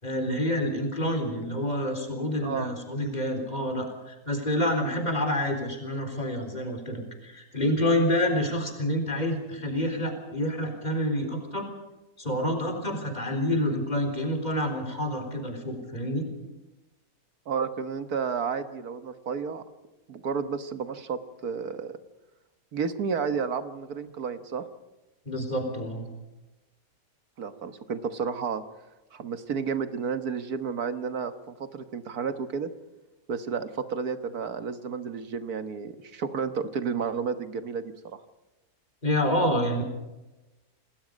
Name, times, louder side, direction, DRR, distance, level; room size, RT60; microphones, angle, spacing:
voice 1, 0.0-11.7 12.2-16.3 25.3-26.1 39.0-39.8, left 1 dB, 30° left, 4 dB, 4.1 m, -28 dB
voice 2, 17.5-19.6 20.1-21.9 22.7-24.6 27.4-28.6 29.1-32.7 33.3-38.2, right 6 dB, 85° right, 9 dB, 1.8 m, -31 dB
27.5 x 20.0 x 5.3 m, 1.0 s
omnidirectional pair, 1.6 m